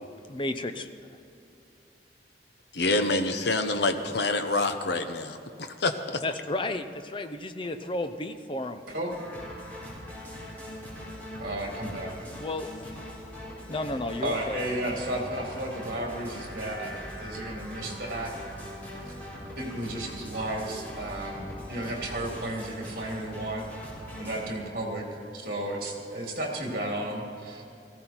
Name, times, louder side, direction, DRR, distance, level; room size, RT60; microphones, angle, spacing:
voice 1, 0.1-0.9 6.2-8.8 12.2-12.9 13.7-14.6, left 2 dB, 30° left, 8 dB, 0.7 m, -33 dB
voice 2, 2.7-6.2, left 2 dB, 65° left, 8 dB, 1.0 m, -27 dB
sound 1, 9.1-24.4, equal, 10° left, 4.6 m, -41 dB
voice 3, 11.4-12.1 14.2-18.3 19.6-23.7 24.2-25.0 25.3-27.6, right 1 dB, 50° right, -1 dB, 3.2 m, -33 dB
18.0 x 15.0 x 4.5 m, 2.6 s
head